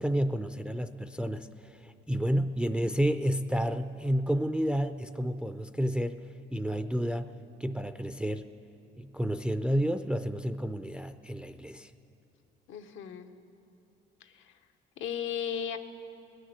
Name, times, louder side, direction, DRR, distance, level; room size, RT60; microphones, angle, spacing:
voice 1, 0.0-6.2 6.5-7.3 7.6-8.5 9.0-11.9, equal, 5° right, 10 dB, 0.4 m, -30 dB
voice 2, 12.7-13.3 14.2-14.5 15.0-15.8, left 8 dB, 85° left, 7 dB, 0.8 m, -35 dB
19.0 x 6.5 x 9.5 m, 2.7 s
cardioid pair, 90°, 20 cm